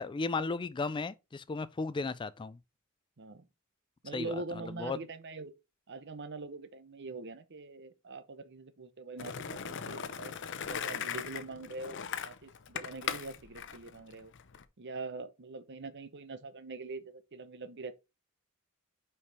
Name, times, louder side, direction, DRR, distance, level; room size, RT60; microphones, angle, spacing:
voice 1, 0.0-2.6 4.1-4.4 4.8-5.0, left 4 dB, 20° left, 0.3 m, -35 dB
voice 2, 4.0-5.5 5.9-10.3 10.6-14.3 14.8-17.9, right 3 dB, 55° right, 0.8 m, -43 dB
Skateboard, 9.2-14.6, left 7 dB, 60° left, 0.7 m, -39 dB
5.8 x 4.7 x 4.8 m
head